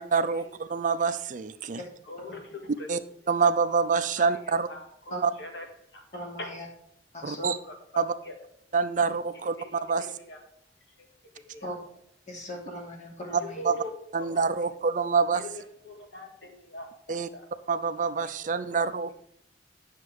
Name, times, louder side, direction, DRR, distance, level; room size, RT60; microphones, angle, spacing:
voice 1, 0.0-1.8 2.9-3.0 3.3-4.7 5.2-5.3 7.2-7.6 8.0-8.1 8.7-10.1 13.6-13.8 14.1-15.4 17.1-17.3 17.7-19.2, right 5 dB, 45° right, 11 dB, 0.5 m, -26 dB
voice 2, 2.0-2.9 4.2-4.4 4.7-5.7 5.9-6.0 6.4-6.5 7.4-7.7 8.3-8.4 9.6-9.7 10.0-10.4 11.3-11.7 13.4-13.9 14.3-14.4 15.4-17.4 18.4-18.8, left 2 dB, 70° left, 2 dB, 2.1 m, -42 dB
voice 3, 6.1-6.7 7.1-7.5 11.6-11.8 12.3-13.6, equal, 40° left, -1 dB, 2.8 m, -38 dB
9.6 x 6.6 x 4.9 m, 0.72 s
head